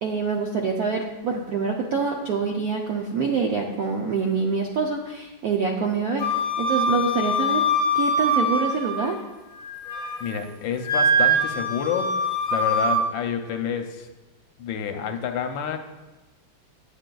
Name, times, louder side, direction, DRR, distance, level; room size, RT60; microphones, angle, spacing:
voice 1, 0.0-6.2 6.6-7.6 7.9-9.2, right 5 dB, 80° right, 0 dB, 0.8 m, -25 dB
Wind instrument woodwind instrument, 6.2-9.2 9.6-10.3 10.8-13.0, equal, 5° left, 0.9 m, -23 dB
voice 2, 10.2-12.2 12.5-14.1 14.6-15.8, left 8 dB, 75° left, 6 dB, 1.2 m, -28 dB
9.1 x 7.6 x 2.3 m, 1.1 s
omnidirectional pair, 2.2 m